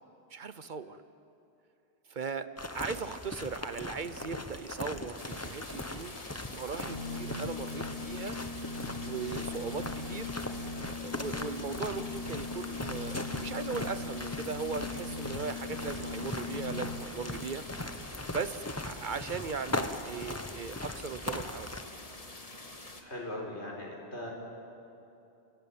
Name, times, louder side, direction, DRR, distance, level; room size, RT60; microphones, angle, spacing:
voice 1, 0.3-1.0 2.1-6.2 6.5-8.4 9.0-10.3 10.9-17.6 18.3-22.0, right 5 dB, 50° right, 12 dB, 1.0 m, -38 dB
sound 1, 2.6-21.8, left 2 dB, 15° left, 0.9 m, -40 dB
sound 2, 5.2-23.0, left 2 dB, 35° left, 1.8 m, -47 dB
Organ, 6.7-17.4, left 4 dB, 25° right, 5.3 m, -40 dB
voice 2, 23.0-24.3, left 1 dB, 90° left, -2 dB, 5.2 m, -39 dB
29.5 x 16.5 x 8.8 m, 2.8 s
omnidirectional pair, 1.1 m